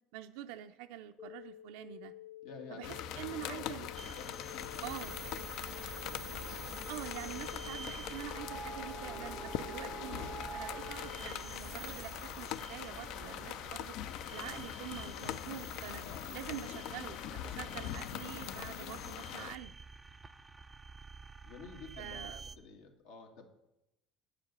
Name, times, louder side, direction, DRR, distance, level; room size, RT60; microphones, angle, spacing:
voice 1, 0.1-2.1 2.7-3.9 4.8-5.2 6.9-14.0 14.3-16.0 16.3-19.7 22.0-22.4, right 12 dB, 85° right, 6 dB, 0.5 m, -46 dB
sound 1, 1.2-11.2, left 12 dB, 40° left, 1.0 m, -51 dB
voice 2, 2.4-3.7 4.0-5.5 5.9-6.5 15.9-16.6 21.4-23.5, left 4 dB, 80° left, 3 dB, 1.9 m, -52 dB
sound 2, 2.8-19.6, left 11 dB, 65° left, 0.4 m, -42 dB
sound 3, 4.0-22.6, right 4 dB, 15° right, 0.4 m, -48 dB
9.6 x 5.0 x 8.0 m, 0.88 s
cardioid pair, 140°, 0 cm